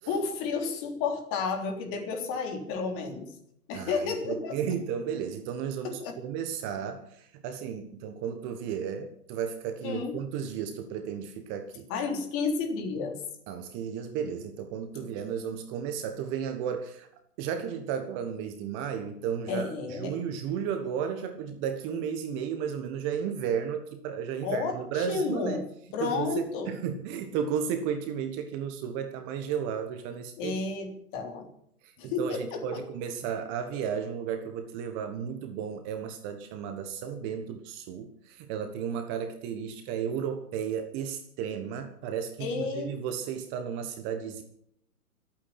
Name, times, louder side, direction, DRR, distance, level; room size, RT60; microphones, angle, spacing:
voice 1, 0.1-3.3 3.7-4.6 5.8-6.1 9.8-10.2 11.9-13.2 15.0-15.1 19.5-20.2 24.4-25.6 25.9-26.8 30.4-31.5 32.0-32.8 42.4-42.9, left 4 dB, 30° left, 4 dB, 3.6 m, -31 dB
voice 2, 3.7-11.9 13.5-17.1 17.4-25.6 26.0-30.5 31.8-44.4, right 8 dB, 25° right, 7 dB, 1.4 m, -34 dB
25.5 x 9.1 x 5.8 m, 0.71 s
figure-of-eight pair, 125°, 45 cm